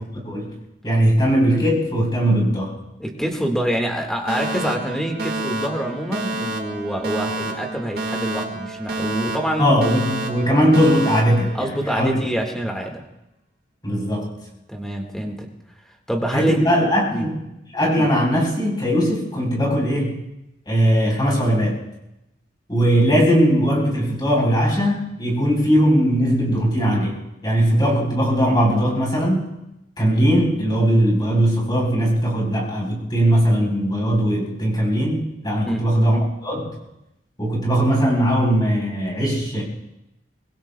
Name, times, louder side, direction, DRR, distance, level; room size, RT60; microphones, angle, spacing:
voice 1, 0.2-0.5 0.8-2.7 9.6-12.2 13.8-14.3 16.3-17.4 17.7-20.2 20.7-21.8 22.7-29.4 30.0-36.7 37.4-39.6, equal, 25° left, -2 dB, 3.9 m, -19 dB
voice 2, 3.0-9.7 11.5-13.0 14.7-15.5 16.1-16.6 17.1-17.3 18.0-18.1 35.6-35.9, right 1 dB, 5° left, 1 dB, 1.6 m, -26 dB
Alarm, 4.3-12.3, right 2 dB, 55° right, 1.6 m, -29 dB
24.0 x 20.5 x 2.2 m, 0.90 s
head